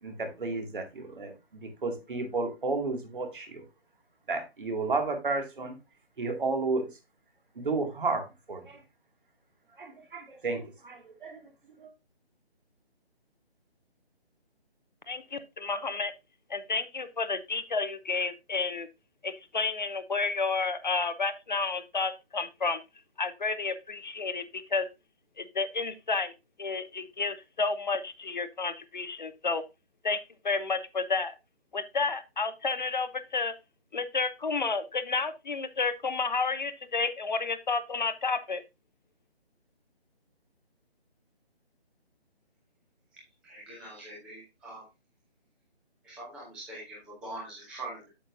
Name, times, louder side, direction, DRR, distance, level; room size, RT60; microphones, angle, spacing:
voice 1, 0.0-3.6 4.3-5.8 6.2-6.9 7.6-8.8 9.8-11.4 11.8-11.9, right 3 dB, 50° right, 2.3 m, -32 dB
voice 2, 15.1-16.1 16.5-18.9 19.2-22.8 23.2-24.9 25.4-26.3 26.6-29.6 30.0-30.2 30.4-31.3 31.7-33.5 33.9-38.6, left 4 dB, 45° left, 0.8 m, -31 dB
voice 3, 43.4-44.8 46.0-48.1, right 2 dB, 5° right, 0.9 m, -43 dB
8.4 x 7.5 x 2.6 m
figure-of-eight pair, 155°, 32 cm